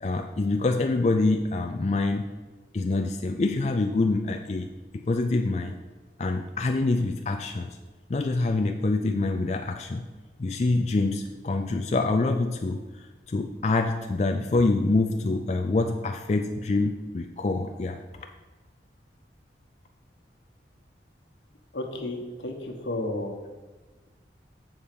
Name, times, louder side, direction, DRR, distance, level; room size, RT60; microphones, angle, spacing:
voice 1, 0.0-2.2 2.7-5.7 6.2-7.8 8.1-10.1 10.4-18.0, left 2 dB, 40° left, 4 dB, 0.4 m, -26 dB
voice 2, 21.7-23.4, left 1 dB, 85° left, 3 dB, 1.2 m, -32 dB
7.1 x 4.4 x 6.7 m, 1.2 s
head